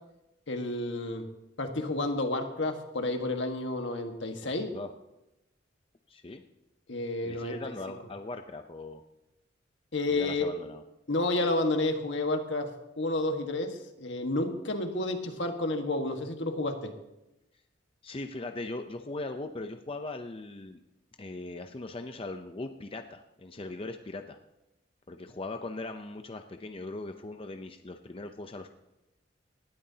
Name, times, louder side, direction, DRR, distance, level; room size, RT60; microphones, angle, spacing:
voice 1, 0.5-1.2 1.6-4.7 6.9-7.5 9.9-10.5 11.1-12.7 13.0-16.9, left 2 dB, 70° left, 5 dB, 1.5 m, -30 dB
voice 2, 4.4-4.9 6.1-6.4 7.2-9.0 10.1-10.8 18.0-20.8 21.2-24.4 25.1-28.7, left 2 dB, 30° left, 6 dB, 0.6 m, -39 dB
19.5 x 12.5 x 2.8 m, 0.92 s
head